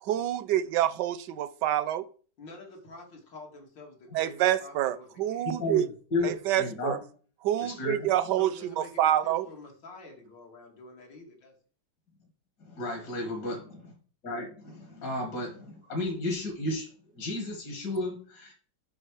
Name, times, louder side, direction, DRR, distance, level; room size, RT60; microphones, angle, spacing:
voice 1, 0.1-2.0 4.1-5.8 6.2-7.0 7.4-9.5, right 12 dB, 75° right, 1.2 m, -27 dB
voice 2, 2.4-5.5 8.4-11.6, left 2 dB, 80° left, 2.8 m, -48 dB
voice 3, 5.5-5.8 6.1-7.0 7.6-8.1 12.6-13.6 14.2-16.9 17.1-18.5, left 2 dB, 65° left, 2.4 m, -33 dB
7.6 x 5.8 x 4.8 m
omnidirectional pair, 2.0 m